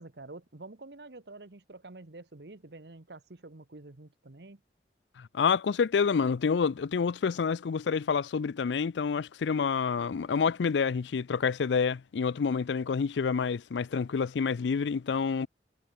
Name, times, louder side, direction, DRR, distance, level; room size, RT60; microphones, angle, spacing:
voice 1, 0.0-4.6, right 2 dB, 65° right, 1.3 m, -48 dB
voice 2, 5.2-15.5, left 5 dB, 85° left, 0.4 m, -28 dB
head